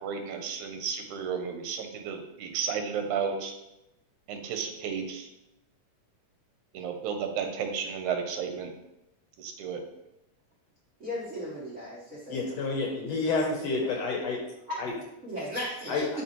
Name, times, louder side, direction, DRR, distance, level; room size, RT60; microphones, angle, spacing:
voice 1, 0.0-3.5 4.3-5.2 6.7-8.7 9.4-9.8, right 6 dB, 80° right, 5 dB, 2.2 m, -33 dB
voice 2, 11.0-12.4 13.6-13.8 14.7-14.8 15.2-16.0, left 1 dB, 40° right, -8 dB, 1.1 m, -36 dB
voice 3, 12.3-14.4 14.8-14.9 15.9-16.1, left 3 dB, 70° left, 0 dB, 1.8 m, -29 dB
10.5 x 3.7 x 3.1 m, 0.91 s
omnidirectional pair, 3.4 m